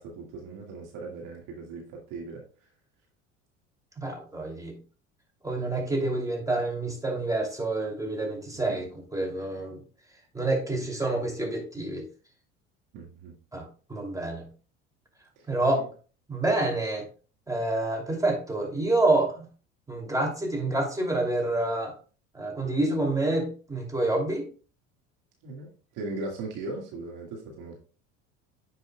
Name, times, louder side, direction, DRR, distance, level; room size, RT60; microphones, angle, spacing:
voice 1, 0.0-2.4 8.7-8.8 12.9-13.3 15.4-15.8 25.4-27.8, right 3 dB, 60° right, 1 dB, 2.0 m, -38 dB
voice 2, 4.0-4.8 5.4-8.8 9.1-9.8 10.3-12.0 13.5-14.4 15.5-15.9 16.3-17.1 17.5-19.4 19.9-21.9 22.3-24.4, right 2 dB, 10° right, 0 dB, 2.7 m, -28 dB
9.8 x 5.4 x 2.3 m, 0.37 s
hypercardioid pair, 70°, 35 cm